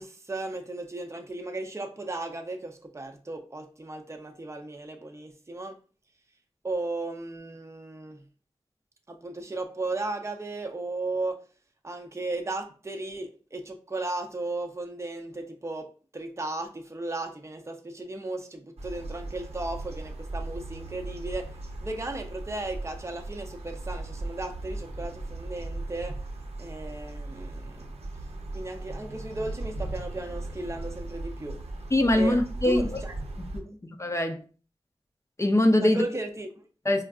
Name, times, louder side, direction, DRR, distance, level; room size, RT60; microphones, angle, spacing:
voice 1, 0.0-5.8 6.6-8.2 9.1-11.4 11.8-26.2 26.6-27.9 28.5-31.6 32.1-32.4 32.6-33.1 33.7-33.8 35.8-36.7, right 2 dB, 25° right, 0.5 m, -35 dB
sound 1, 18.8-33.6, right 2 dB, 70° right, 0.6 m, -38 dB
voice 2, 31.9-33.0 33.5-34.4 35.4-36.0 36.8-37.0, left 1 dB, 25° left, 0.5 m, -23 dB
4.4 x 2.3 x 2.3 m
wide cardioid pair, 50°, 11 cm